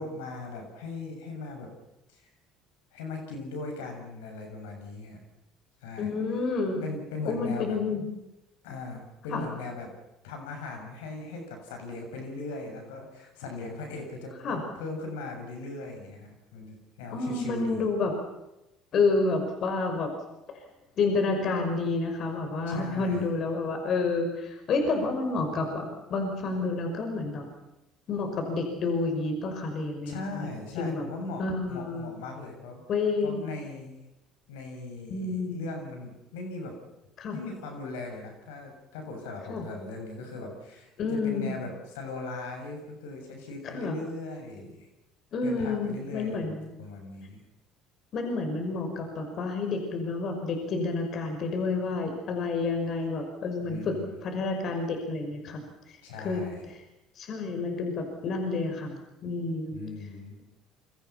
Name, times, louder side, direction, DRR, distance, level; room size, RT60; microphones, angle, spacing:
voice 1, 0.0-1.7 2.1-2.2 2.9-5.2 5.8-6.1 6.8-7.8 8.6-9.9 10.2-17.9 22.7-23.3 30.1-32.8 33.2-34.0 34.5-36.7 37.3-44.9 45.4-46.5 46.8-47.4 53.6-54.2 56.0-56.7 59.7-60.4, left 3 dB, 80° left, 3 dB, 7.2 m, -39 dB
voice 2, 6.0-6.8 7.2-8.1 9.3-9.5 14.4-14.6 17.1-18.1 18.9-20.1 21.0-27.5 28.1-30.5 30.8-31.1 31.4-32.1 32.9-33.4 35.1-35.7 37.2-37.4 39.5-39.6 41.0-41.6 43.7-44.0 45.3-46.7 48.1-53.9 54.2-56.4 57.2-59.8, left 3 dB, 55° left, 5 dB, 5.8 m, -29 dB
28.5 x 25.0 x 5.9 m, 0.93 s
hypercardioid pair, 70°, 0 cm